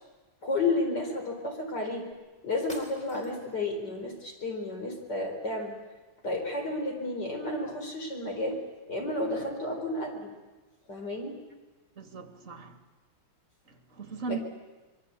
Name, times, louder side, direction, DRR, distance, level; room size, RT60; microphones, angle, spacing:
voice 1, 0.4-2.1 2.4-5.8 6.2-8.6 8.9-10.3 10.9-11.4 14.3-14.4, left 2 dB, 55° left, 3 dB, 4.8 m, -32 dB
sound 1, 2.1-2.2 2.7-3.6, equal, 20° left, 4.4 m, -48 dB
voice 2, 12.0-12.8 13.7-14.4, right 5 dB, 40° right, 5 dB, 2.8 m, -38 dB
26.0 x 22.5 x 8.4 m, 1.2 s
omnidirectional pair, 2.2 m